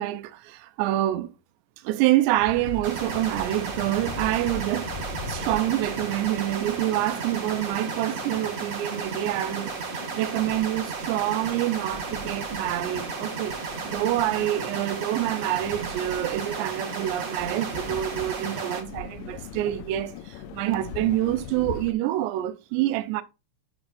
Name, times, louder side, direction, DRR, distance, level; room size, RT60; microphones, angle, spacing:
voice 1, 0.0-1.3 1.8-4.9 5.3-13.6 13.8-23.2, right 14 dB, 90° right, 2.8 m, -27 dB
sound 1, 2.4-21.9, left 6 dB, 80° left, 2.4 m, -41 dB
sound 2, 2.8-18.8, right 5 dB, 60° right, 1.9 m, -34 dB
6.1 x 6.0 x 2.6 m
omnidirectional pair, 4.8 m